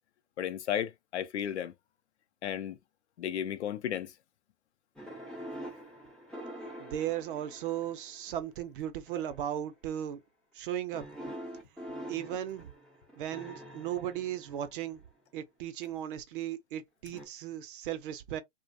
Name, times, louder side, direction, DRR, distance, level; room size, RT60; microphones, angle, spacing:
voice 1, 0.4-1.7 2.4-2.8 3.2-4.1, left 9 dB, 70° left, 0.6 m, -34 dB
sound 1, 5.0-8.3 9.1-9.5 10.9-15.0 17.1-17.3, equal, ahead, 0.4 m, -45 dB
voice 2, 6.8-10.2 10.5-11.0 12.1-12.7 13.2-15.0 15.3-18.4, right 11 dB, 50° right, 0.6 m, -36 dB
2.4 x 2.2 x 2.5 m
hypercardioid pair, 125°, 35 cm